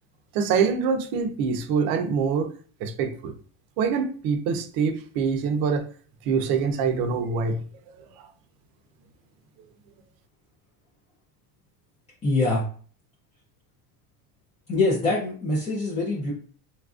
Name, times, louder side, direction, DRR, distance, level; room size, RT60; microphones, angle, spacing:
voice 1, 0.3-2.5 2.8-3.3 3.8-5.8 6.3-7.6, right 5 dB, 50° right, 6 dB, 0.6 m, -24 dB
voice 2, 12.2-12.7 14.7-16.3, left 2 dB, 15° left, -5 dB, 0.4 m, -24 dB
4.1 x 2.4 x 2.4 m, 0.43 s
cardioid pair, 145°, 46 cm